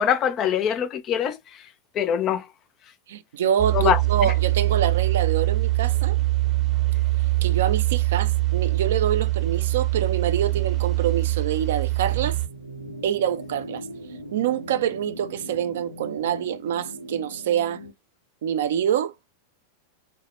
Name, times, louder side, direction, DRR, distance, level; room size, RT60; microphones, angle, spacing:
voice 1, 0.0-1.6 1.9-2.5 3.7-4.3, left 8 dB, 30° left, 0.4 m, -24 dB
voice 2, 3.1-6.2 7.4-12.4 13.0-13.8 14.3-17.8 18.4-19.1, right 9 dB, 60° right, 0.4 m, -26 dB
sound 1, 3.6-12.5, right 19 dB, 25° right, 0.7 m, -23 dB
sound 2, 10.4-17.9, right 1 dB, 90° right, 0.7 m, -41 dB
3.0 x 2.0 x 3.1 m
figure-of-eight pair, 90°, 0 cm